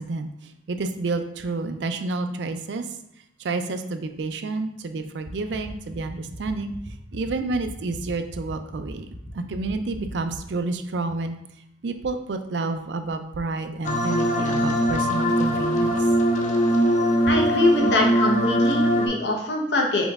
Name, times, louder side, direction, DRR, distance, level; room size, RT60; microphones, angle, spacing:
voice 1, 0.0-2.9 3.4-6.7 7.1-9.1 9.3-11.4 11.8-15.9, right 3 dB, 80° right, 8 dB, 0.4 m, -29 dB
sound 1, 5.2-10.4, equal, 5° right, 0.6 m, -39 dB
sound 2, 13.8-19.1, equal, 45° left, 0.5 m, -21 dB
voice 2, 17.3-20.1, left 1 dB, 70° left, 1 dB, 0.8 m, -23 dB
5.2 x 4.0 x 2.4 m, 0.76 s
head